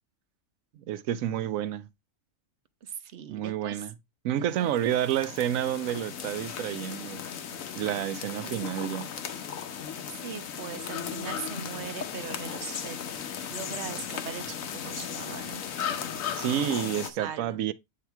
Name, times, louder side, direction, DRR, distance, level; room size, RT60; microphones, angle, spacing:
voice 1, 0.9-1.9 3.3-3.9 4.2-7.2 7.8-9.1 16.4-17.7, right 11 dB, 90° right, 1.0 m, -29 dB
voice 2, 2.8-3.8 4.3-4.7 8.4-8.9 10.1-13.2 13.5-14.6 14.8-15.6 17.0-17.6, right 8 dB, 60° right, 0.9 m, -40 dB
sound 1, 4.6-17.1, left 8 dB, 85° left, 1.2 m, -36 dB
8.5 x 2.8 x 4.6 m
omnidirectional pair, 1.4 m